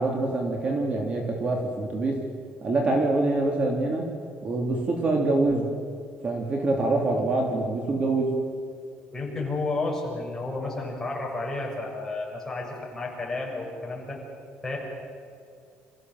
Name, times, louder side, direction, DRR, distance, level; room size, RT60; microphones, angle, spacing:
voice 1, 0.0-2.2 2.6-4.1 4.4-5.7 6.2-8.4, right 2 dB, 35° right, 1 dB, 3.1 m, -25 dB
voice 2, 9.1-14.2 14.6-14.8, left 2 dB, 10° left, -2 dB, 6.5 m, -31 dB
27.0 x 15.5 x 7.8 m, 2.4 s
cardioid pair, 135°, 4 cm